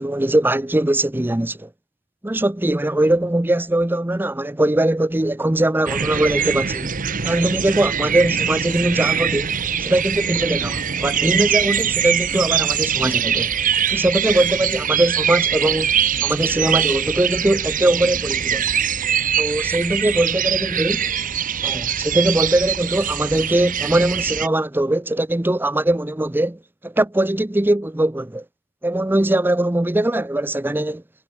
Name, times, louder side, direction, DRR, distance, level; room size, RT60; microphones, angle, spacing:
voice 1, 0.0-1.7 2.2-6.9 7.2-9.5 9.8-13.5 13.9-16.0 16.2-18.6 19.4-21.0 21.6-28.4 28.8-31.0, right 1 dB, 10° right, 0.5 m, -21 dB
sound 1, 5.9-24.5, right 8 dB, 40° right, 1.0 m, -23 dB
head